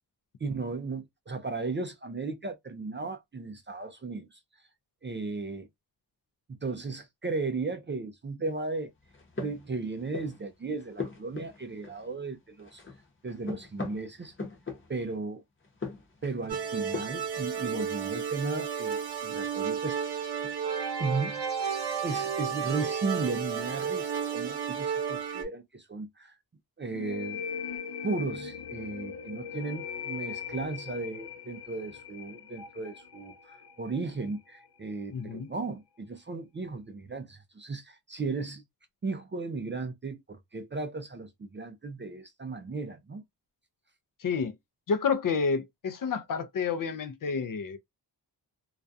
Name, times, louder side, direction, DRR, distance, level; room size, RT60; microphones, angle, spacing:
voice 1, 0.4-4.4 5.0-5.7 6.5-8.9 9.4-12.8 13.2-14.3 14.9-15.4 16.2-20.5 21.0-21.4 22.0-26.3 26.8-27.5 28.0-38.6 39.0-43.2, right 3 dB, 30° right, 0.3 m, -35 dB
sound 1, 9.0-10.4 10.8-12.3 12.6-15.2 15.6-17.3, left 3 dB, 30° left, 0.8 m, -40 dB
sound 2, 16.5-25.4, right 7 dB, 70° right, 0.7 m, -32 dB
sound 3, 26.9-34.3, left 6 dB, 70° left, 0.8 m, -40 dB
voice 2, 35.1-35.5 44.2-44.5 44.9-47.8, left 5 dB, 50° left, 0.4 m, -29 dB
2.4 x 2.2 x 2.5 m
wide cardioid pair, 125°, 42 cm